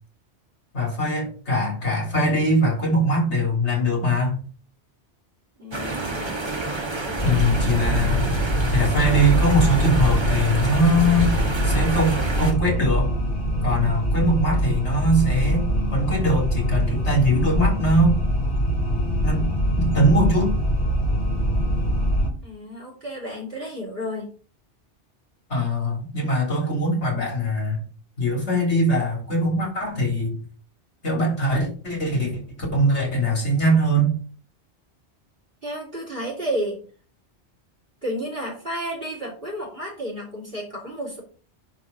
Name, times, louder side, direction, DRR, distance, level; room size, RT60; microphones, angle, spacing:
voice 1, 0.7-4.4 7.2-8.3 8.7-11.3 11.6-13.1 13.6-15.7 15.9-18.2 19.2-19.5 19.8-20.6 25.5-27.8 28.2-30.4 31.0-34.2, equal, 80° left, -1 dB, 3.6 m, -22 dB
voice 2, 5.6-6.4 7.0-8.0 22.4-24.3 35.6-36.8 38.0-41.2, equal, 55° right, -1 dB, 3.2 m, -32 dB
sound 1, 5.7-12.5, right 3 dB, 25° right, 1.1 m, -29 dB
sound 2, 7.2-22.3, equal, 55° left, 2.2 m, -23 dB
10.5 x 3.4 x 5.2 m, 0.40 s
omnidirectional pair, 1.2 m